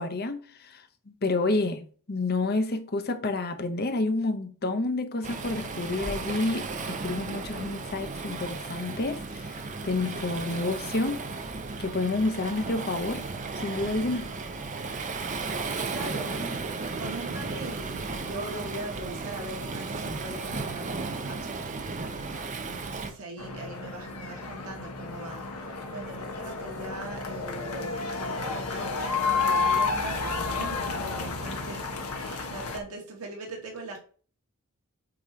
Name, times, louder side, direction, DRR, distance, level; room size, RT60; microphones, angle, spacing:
voice 1, 0.0-9.6 9.8-11.3 11.8-13.3 13.6-14.3, left 2 dB, 45° left, 0.8 m, -29 dB
Waves surf, 5.2-23.1, right 3 dB, 35° right, 0.8 m, -35 dB
voice 2, 15.6-16.4 16.9-34.0, right 2 dB, 75° right, 1.8 m, -41 dB
sound 1, 23.4-32.8, left 4 dB, 90° left, 1.1 m, -31 dB
8.6 x 3.0 x 5.1 m
head